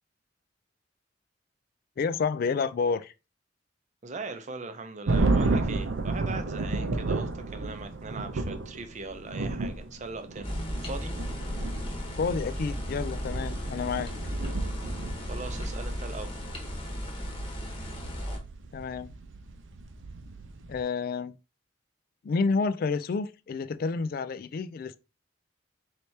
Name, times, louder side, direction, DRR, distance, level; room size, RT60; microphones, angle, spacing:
voice 1, 2.0-3.1 12.2-14.1 18.7-19.1 20.7-21.3 22.2-25.0, left 4 dB, 50° left, 0.3 m, -29 dB
voice 2, 4.0-10.5 10.8-11.1 15.3-16.3, right 3 dB, 40° right, 0.6 m, -40 dB
sound 1, 5.1-20.8, right 3 dB, 85° right, 0.6 m, -32 dB
sound 2, 10.4-18.4, equal, 30° left, 1.0 m, -35 dB
4.4 x 3.3 x 2.7 m
head